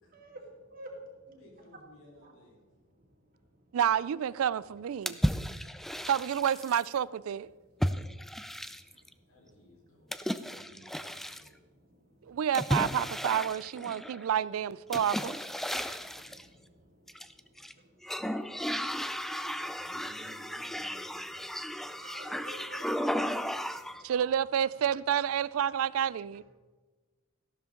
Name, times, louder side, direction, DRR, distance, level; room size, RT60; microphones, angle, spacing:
voice 1, 0.1-1.2 2.2-2.3 3.0-3.1 3.5-3.6 5.8-5.9 8.2-8.3 8.6-9.1 11.9-12.4 15.6-18.7 19.1-19.2 21.8-24.0, right 1 dB, 45° right, 2.3 m, -52 dB
voice 2, 1.3-2.6 5.9-6.4 9.3-11.6 16.7-16.8 19.6-21.4 23.8-24.4, equal, 70° left, 4.4 m, -57 dB
voice 3, 3.7-5.2 6.1-7.5 12.3-15.3 24.0-26.4, right 9 dB, 75° right, 0.3 m, -29 dB
sound 1, 5.1-6.9 7.8-9.1 10.1-11.5 12.5-14.2 14.9-16.4 17.1-17.7 18.0-24.0, equal, ahead, 0.4 m, -34 dB
13.5 x 12.5 x 3.8 m
head